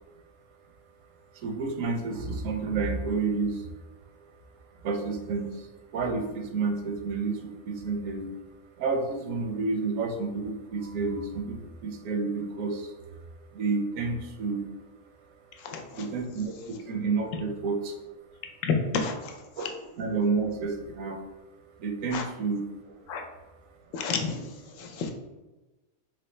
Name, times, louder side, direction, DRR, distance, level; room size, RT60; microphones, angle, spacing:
voice 1, 1.2-3.7 4.0-8.3 8.8-14.7 15.0-18.0 18.4-18.5 19.6-23.0 23.4-23.8 24.7-25.1, right 4 dB, 85° right, 3 dB, 1.0 m, -31 dB
voice 2, 15.6-16.0 18.6-19.3 22.1-22.2 23.1-23.2 23.9-24.5 24.8-25.1, left 5 dB, 80° left, 4 dB, 0.9 m, -30 dB
3.0 x 2.9 x 3.2 m, 1.1 s
omnidirectional pair, 1.3 m